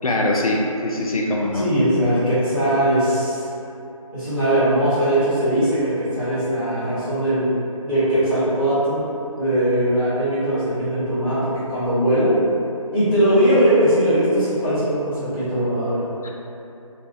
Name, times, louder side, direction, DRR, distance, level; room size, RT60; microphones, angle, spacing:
voice 1, 0.0-1.7, left 1 dB, 80° left, -1 dB, 0.4 m, -22 dB
voice 2, 1.5-3.5 4.1-7.5 7.8-9.1 9.3-12.3 12.9-16.0, right 1 dB, ahead, -27 dB, 0.5 m, -20 dB
2.4 x 2.0 x 3.3 m, 2.8 s
figure-of-eight pair, 155°, 18 cm